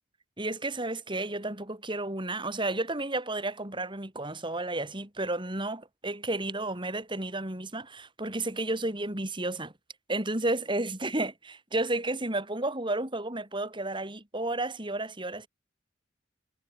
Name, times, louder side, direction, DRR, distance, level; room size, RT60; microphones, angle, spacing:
voice 1, 0.4-9.7 10.1-15.5, right 2 dB, 25° right, 4.7 m, -32 dB
head